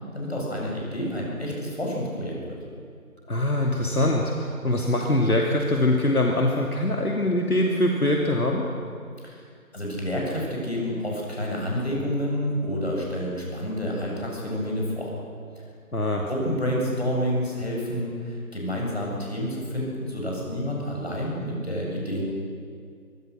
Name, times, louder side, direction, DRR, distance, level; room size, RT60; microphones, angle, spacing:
voice 1, 0.1-2.6 9.2-9.4 9.7-15.1 16.3-22.2, equal, 45° left, -2 dB, 7.4 m, -29 dB
voice 2, 3.3-8.7 15.9-16.3, left 1 dB, 75° left, 0 dB, 2.9 m, -23 dB
24.5 x 22.0 x 6.5 m, 2.2 s
figure-of-eight pair, 180°, 44 cm